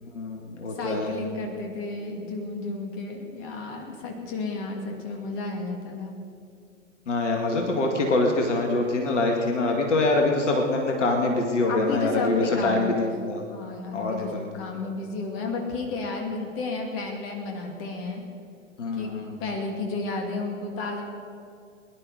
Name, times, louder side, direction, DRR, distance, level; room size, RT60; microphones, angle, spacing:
voice 1, 0.0-1.1 7.1-13.4 13.9-14.5 18.8-19.4, left 2 dB, 65° left, 2 dB, 2.2 m, -25 dB
voice 2, 0.7-6.1 11.7-13.1 13.5-18.2 19.0-19.1 19.4-21.0, left 3 dB, 35° left, 2 dB, 2.6 m, -32 dB
22.0 x 11.0 x 5.1 m, 2.4 s
figure-of-eight pair, 100°, 39 cm